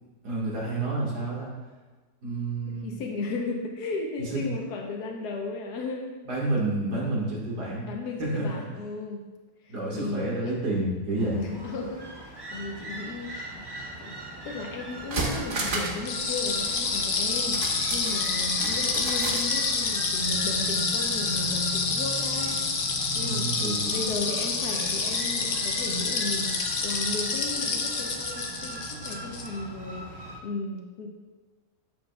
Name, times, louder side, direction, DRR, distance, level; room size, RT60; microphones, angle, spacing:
voice 1, 0.2-1.5 2.2-3.0 4.2-4.5 6.3-7.9 8.2-8.6 9.7-11.4 23.2-24.0, right 2 dB, 80° right, -4 dB, 2.4 m, -29 dB
voice 2, 2.8-6.1 7.8-9.2 9.6-10.6 11.2-13.4 14.0-14.1 14.4-22.6 23.1-31.1, left 3 dB, 80° left, 1 dB, 1.5 m, -35 dB
sound 1, 11.2-30.4, right 1 dB, 25° right, 0.5 m, -40 dB
sound 2, 14.5-14.6 14.9-16.1 16.3-16.4 17.5-19.5 19.8-19.9, right 2 dB, 40° right, 0.9 m, -32 dB
sound 3, 16.1-29.5, left 4 dB, 50° left, 0.7 m, -28 dB
9.5 x 7.2 x 2.3 m, 1.3 s
omnidirectional pair, 1.7 m